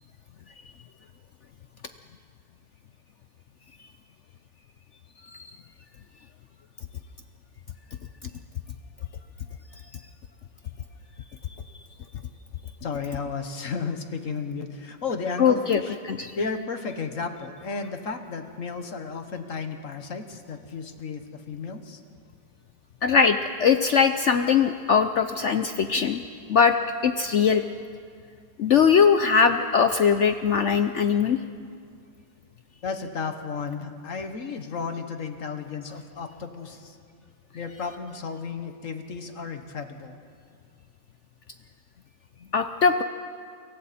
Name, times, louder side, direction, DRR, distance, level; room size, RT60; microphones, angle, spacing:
voice 1, 12.8-16.0 16.4-22.0 32.8-37.0 37.5-40.2, left 5 dB, 50° left, 7 dB, 1.5 m, -33 dB
voice 2, 15.4-16.3 23.0-26.2 26.5-26.8 27.0-27.6 28.6-31.4 42.5-43.0, left 6 dB, 70° left, 9 dB, 0.7 m, -21 dB
29.0 x 23.5 x 4.3 m, 2.2 s
omnidirectional pair, 2.0 m